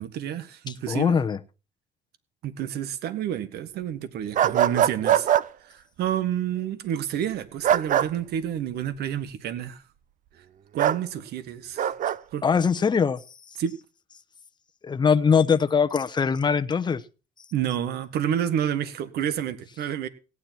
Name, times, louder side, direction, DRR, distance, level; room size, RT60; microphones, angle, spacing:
voice 1, 0.0-1.1 2.4-5.3 5.6-9.8 10.7-11.9 12.3-12.4 13.6-13.8 17.5-20.1, right 9 dB, 70° right, 1.6 m, -29 dB
voice 2, 0.9-1.4 12.4-13.2 14.8-17.0, left 6 dB, 25° left, 0.9 m, -21 dB
sound 1, 4.3-5.4 7.6-8.1 10.8-11.0 11.8-12.2, right 10 dB, 50° right, 0.6 m, -21 dB
17.0 x 9.9 x 4.5 m
cardioid pair, 110°, 17 cm